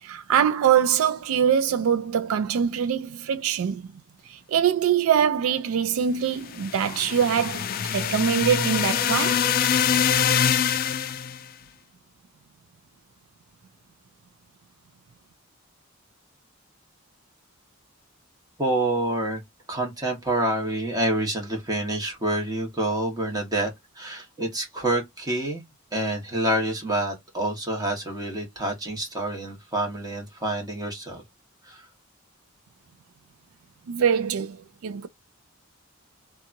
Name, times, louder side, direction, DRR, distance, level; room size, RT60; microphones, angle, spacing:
voice 1, 0.0-3.8 4.3-9.5 33.9-35.1, right 8 dB, 85° right, 0.4 m, -23 dB
sound 1, 6.4-11.4, left 8 dB, 45° left, 0.3 m, -24 dB
voice 2, 18.6-19.4 19.7-25.6 25.9-31.2 31.7-31.8, right 1 dB, 20° right, 1.2 m, -27 dB
2.8 x 2.3 x 2.6 m
head